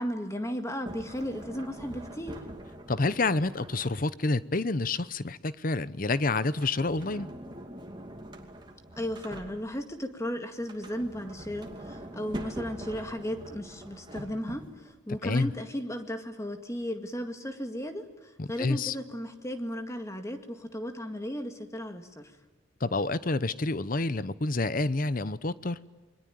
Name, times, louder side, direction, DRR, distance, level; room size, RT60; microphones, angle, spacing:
voice 1, 0.0-2.4 9.0-22.3, equal, 15° left, 1.9 m, -35 dB
Sliding door, 0.8-4.4 6.4-10.0 10.6-14.9, right 1 dB, 25° right, 2.6 m, -44 dB
voice 2, 2.9-7.3 15.2-15.5 18.4-18.9 22.8-25.8, left 3 dB, 45° left, 0.8 m, -28 dB
29.0 x 22.5 x 9.3 m
head